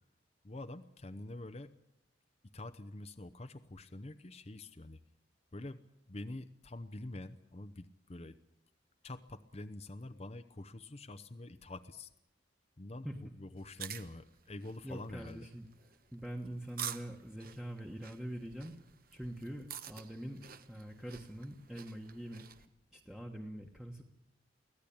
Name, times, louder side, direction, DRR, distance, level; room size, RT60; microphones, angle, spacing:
voice 1, 0.4-1.7 2.5-5.0 5.5-5.8 6.1-8.4 9.0-12.1 12.8-15.5, left 2 dB, 35° left, 10 dB, 0.8 m, -46 dB
sound 1, 13.6-22.7, right 9 dB, 50° right, 1.2 m, -49 dB
voice 2, 14.8-15.6 16.1-18.8 19.1-22.4 22.9-24.0, right 1 dB, 5° right, 1 dB, 1.4 m, -44 dB
24.5 x 17.0 x 8.7 m, 0.86 s
head